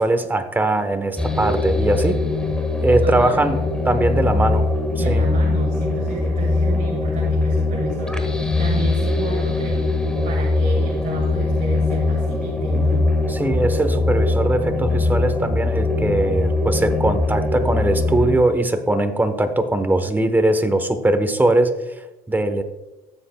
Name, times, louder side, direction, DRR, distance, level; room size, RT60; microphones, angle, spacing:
voice 1, 0.0-2.2 2.8-3.6 3.8-4.7 5.1-5.2 13.3-21.7 22.3-22.6, right 2 dB, 10° right, 8 dB, 0.9 m, -20 dB
sound 1, 1.2-18.4, left 2 dB, 5° left, 1.3 m, -21 dB
voice 2, 5.0-9.9 10.2-13.1, right 4 dB, 45° right, -2 dB, 2.0 m, -32 dB
15.0 x 7.8 x 2.2 m, 1.0 s
cardioid pair, 110°, 17 cm